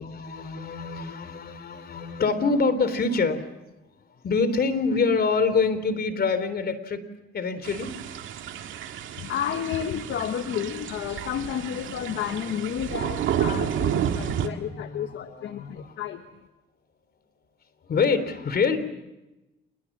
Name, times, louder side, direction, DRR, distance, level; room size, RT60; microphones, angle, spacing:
voice 1, 0.0-3.4 4.2-7.0 7.3-7.9 12.0-12.2 12.8-15.9 17.9-18.8, left 4 dB, 50° left, 12 dB, 3.4 m, -26 dB
sound 1, 7.6-14.5, right 10 dB, 80° right, 2.0 m, -31 dB
voice 2, 9.2-16.2, left 9 dB, 70° left, 8 dB, 1.3 m, -31 dB
27.5 x 21.5 x 7.4 m, 1.0 s
cardioid pair, 90°, 20 cm